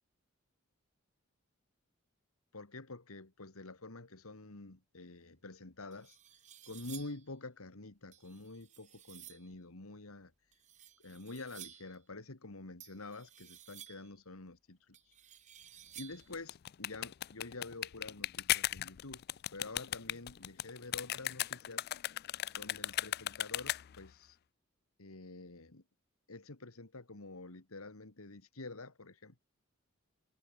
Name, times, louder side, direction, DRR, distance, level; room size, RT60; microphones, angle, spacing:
voice 1, 2.5-6.2 6.7-10.3 11.0-15.1 16.0-19.2 19.5-21.9 22.6-24.4 25.0-25.8 26.3-29.4, left 2 dB, 90° left, 2.0 m, -48 dB
sound 1, 5.4-5.5 5.9-7.3 8.1-9.5 10.5-12.0 12.8-14.2 14.9-16.4, right 11 dB, 35° right, 1.7 m, -54 dB
sound 2, 16.2-24.1, left 14 dB, 45° left, 0.3 m, -37 dB
open air
head